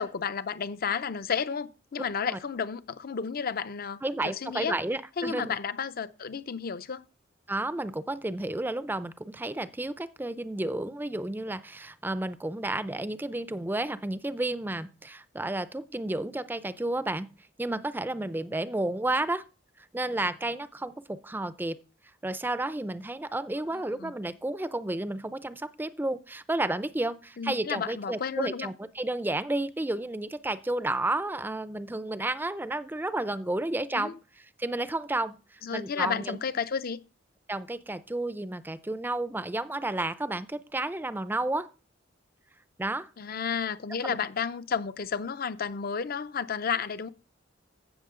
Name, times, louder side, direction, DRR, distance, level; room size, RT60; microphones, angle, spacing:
voice 1, 0.0-4.8 5.2-7.1 23.7-24.1 27.4-28.7 33.9-34.2 35.6-37.0 43.2-47.1, left 6 dB, 50° left, 0.6 m, -32 dB
voice 2, 4.0-5.6 7.5-17.3 17.6-19.4 19.9-21.8 22.2-34.2 34.6-35.4 35.7-36.4 37.5-41.7 42.8-43.1 44.0-44.2, right 2 dB, 10° right, 0.5 m, -31 dB
15.5 x 6.2 x 3.7 m
head